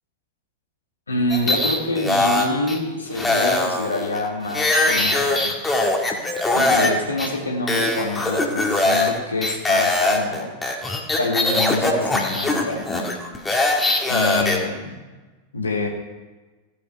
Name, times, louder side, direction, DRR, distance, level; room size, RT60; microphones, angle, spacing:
voice 1, 1.1-5.5 6.5-10.5 11.2-12.8 14.1-15.0 15.5-15.9, left 2 dB, 75° left, 1 dB, 2.1 m, -26 dB
sound 1, 1.3-2.8 3.1-6.9 7.2-7.3 7.7-9.1 9.4-14.6, left 2 dB, 10° left, 1.9 m, -21 dB
15.0 x 8.1 x 5.5 m, 1.3 s
figure-of-eight pair, 90°, 0 cm